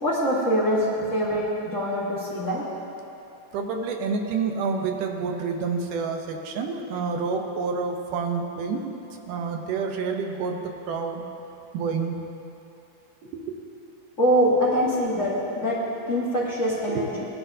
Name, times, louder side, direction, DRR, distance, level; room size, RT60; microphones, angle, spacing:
voice 1, 0.0-2.7 14.2-17.3, equal, 35° left, -8 dB, 1.3 m, -24 dB
voice 2, 3.5-10.6 10.9-11.2 11.7-12.2 13.3-13.4 16.9-17.0, right 5 dB, 85° right, 3 dB, 2.5 m, -28 dB
18.5 x 11.5 x 2.7 m, 2.9 s
omnidirectional pair, 3.7 m